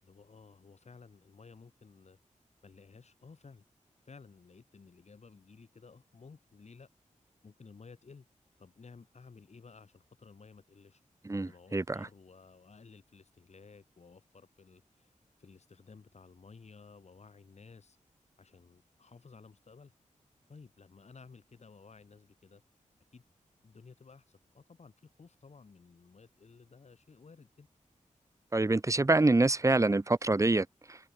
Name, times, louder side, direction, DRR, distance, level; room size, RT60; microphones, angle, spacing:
voice 1, 0.0-2.2 2.6-3.6 4.0-6.9 7.4-8.3 8.6-11.0 11.3-18.0 18.4-19.9 20.5-22.6 23.1-23.2 23.6-27.7, left 4 dB, 55° left, 6.7 m, -55 dB
voice 2, 11.2-12.1 28.5-31.0, right 2 dB, 25° right, 1.4 m, -26 dB
wide cardioid pair, 100°, 13 cm